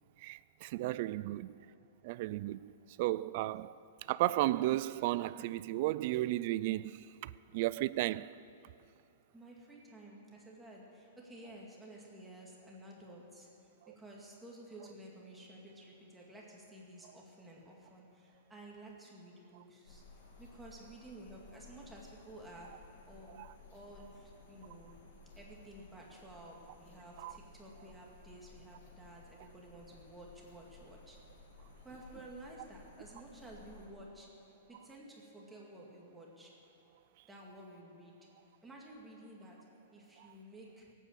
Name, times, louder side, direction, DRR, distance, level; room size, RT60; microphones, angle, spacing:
voice 1, 0.2-1.5 2.0-2.7 3.0-3.8 4.1-8.4 13.9-14.0 23.4-23.5 27.2-27.3, right 16 dB, 45° right, 0.3 m, -34 dB
voice 2, 9.3-22.7 23.0-23.4 23.7-24.9 25.4-31.2 31.8-34.3 34.7-36.5 37.3-38.1 38.6-39.6 39.9-40.9, right 1 dB, 5° right, 2.1 m, -53 dB
sound 1, 19.9-33.9, left 3 dB, 60° left, 2.5 m, -58 dB
18.0 x 9.1 x 7.4 m
hypercardioid pair, 160°, 0 cm